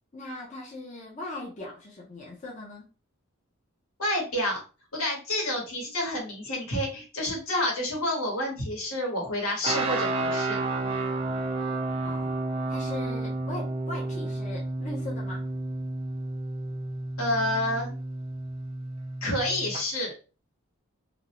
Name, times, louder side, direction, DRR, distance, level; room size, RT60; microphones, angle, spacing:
voice 1, 0.1-2.9 12.0-15.5, left 2 dB, 35° left, -3 dB, 0.5 m, -39 dB
voice 2, 4.0-4.6 4.9-10.6 17.2-17.9 19.2-20.1, left 1 dB, 75° left, -1 dB, 1.1 m, -29 dB
sound 1, 9.6-19.8, right 2 dB, 25° right, 0.4 m, -31 dB
2.5 x 2.0 x 2.8 m, 0.34 s
head